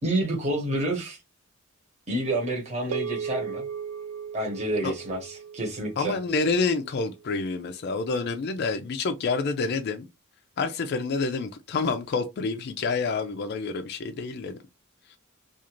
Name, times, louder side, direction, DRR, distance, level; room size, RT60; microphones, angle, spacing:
voice 1, 0.0-1.2 2.1-3.7 4.3-6.2, right 1 dB, 30° right, 1.0 m, -29 dB
sound 1, 2.9-7.4, right 7 dB, 75° right, 0.4 m, -37 dB
voice 2, 6.0-10.1 10.6-14.6, left 4 dB, 50° left, 0.4 m, -28 dB
2.4 x 2.4 x 2.9 m
head